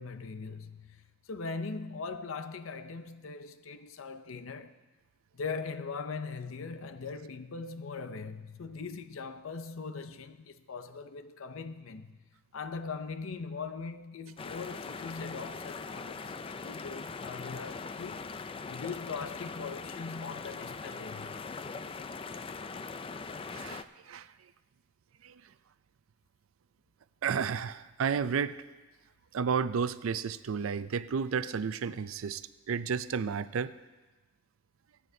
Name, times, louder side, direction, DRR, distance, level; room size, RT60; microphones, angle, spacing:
voice 1, 0.0-4.7 5.3-12.2 12.5-18.3 18.7-21.5, left 4 dB, 75° left, 0.6 m, -40 dB
sound 1, 14.4-23.8, left 4 dB, 25° left, 0.4 m, -41 dB
voice 2, 23.5-24.3 25.2-25.4 27.2-28.6 29.3-33.7, right 6 dB, 80° right, 0.4 m, -32 dB
22.5 x 9.4 x 2.7 m
head